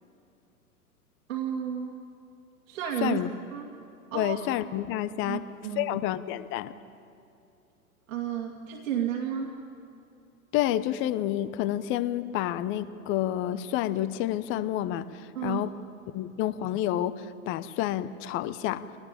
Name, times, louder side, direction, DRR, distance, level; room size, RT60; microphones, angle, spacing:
voice 1, 1.3-1.9 2.7-3.2 3.5-3.7 4.1-4.5 5.2-6.0 8.1-9.5 15.4-15.6, right 9 dB, 60° right, -1 dB, 2.3 m, -32 dB
voice 2, 4.1-5.4 5.7-6.7 10.5-15.7 16.1-18.8, left 13 dB, 25° left, 15 dB, 0.8 m, -29 dB
24.5 x 19.0 x 8.8 m, 2.6 s
figure-of-eight pair, 105°, 46 cm